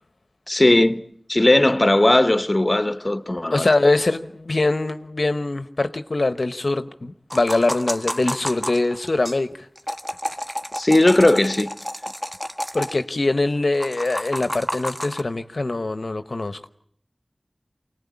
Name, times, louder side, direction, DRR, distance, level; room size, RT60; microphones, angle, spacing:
voice 1, 0.5-1.0 1.3-3.7 10.8-11.7, left 1 dB, 35° left, 1.1 m, -17 dB
voice 2, 3.5-9.5 12.7-16.7, left 2 dB, 60° left, 0.9 m, -23 dB
sound 1, 7.3-9.4 9.8-13.0 13.7-15.2, equal, 5° right, 1.5 m, -30 dB
25.0 x 19.5 x 8.5 m
wide cardioid pair, 45°, 0 cm